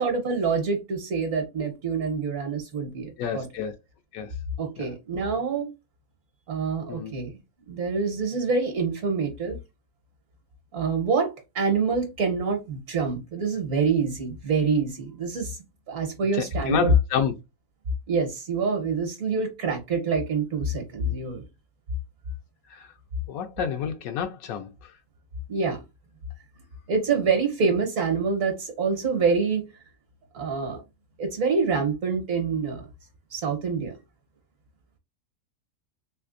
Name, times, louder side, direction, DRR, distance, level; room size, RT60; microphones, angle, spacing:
voice 1, 0.0-3.4 4.6-5.7 6.5-7.3 7.7-9.6 10.7-15.6 15.9-16.9 18.1-21.4 25.5-25.8 26.9-29.7 30.3-30.8 31.2-32.8 33.3-33.9, right 5 dB, 70° right, 1.4 m, -26 dB
voice 2, 3.2-3.7 4.1-4.3 4.8-4.9 6.9-7.2 16.3-17.3 22.7-22.9 23.3-24.9, left 8 dB, 85° left, 1.0 m, -29 dB
3.4 x 3.2 x 2.4 m
omnidirectional pair, 1.4 m